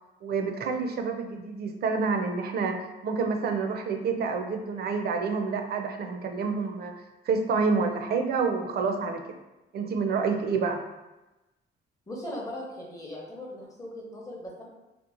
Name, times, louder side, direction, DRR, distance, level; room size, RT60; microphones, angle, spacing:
voice 1, 0.2-2.8 3.0-6.9 7.2-9.2 9.7-10.8, right 4 dB, 55° right, 5 dB, 0.4 m, -28 dB
voice 2, 12.1-14.7, left 1 dB, 15° left, -3 dB, 0.7 m, -39 dB
2.9 x 2.1 x 2.4 m, 1.0 s
cardioid pair, 90°, 20 cm